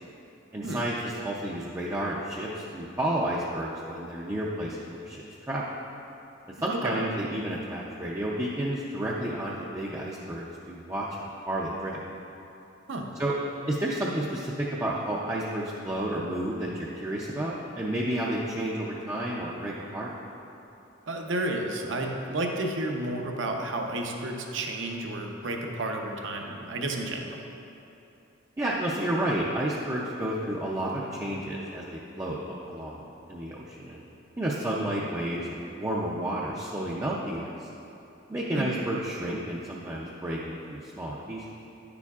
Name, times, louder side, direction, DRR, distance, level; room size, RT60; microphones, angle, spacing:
voice 1, 0.5-5.7 6.6-12.0 13.2-13.3 13.7-20.1 28.6-34.0 34.4-37.7 38.3-41.4, right 1 dB, 15° right, -5 dB, 0.4 m, -31 dB
voice 2, 21.1-27.4 38.5-38.7, right 1 dB, 65° right, 2 dB, 0.7 m, -31 dB
9.9 x 7.0 x 2.4 m, 2.9 s
head